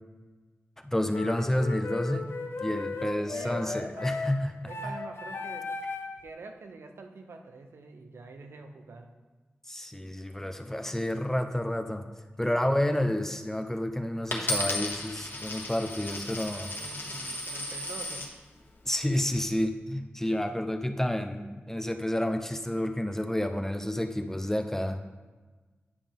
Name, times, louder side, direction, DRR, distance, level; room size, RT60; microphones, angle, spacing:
voice 1, 0.8-2.3 2.6-5.0 9.7-12.0 12.4-16.7 18.8-25.0, left 1 dB, 10° left, 6 dB, 0.6 m, -30 dB
sound 1, 1.1-6.2, left 3 dB, 75° left, 0.6 m, -36 dB
voice 2, 3.1-4.2 4.7-5.7 6.2-9.1 12.5-12.7 12.9-13.1 16.3-18.3, right 3 dB, 80° right, 5 dB, 0.6 m, -46 dB
Coin (dropping), 14.3-18.3 19.0-19.4, left 1 dB, 55° left, 1.2 m, -34 dB
9.6 x 5.3 x 3.5 m, 1.3 s
cardioid pair, 55°, 4 cm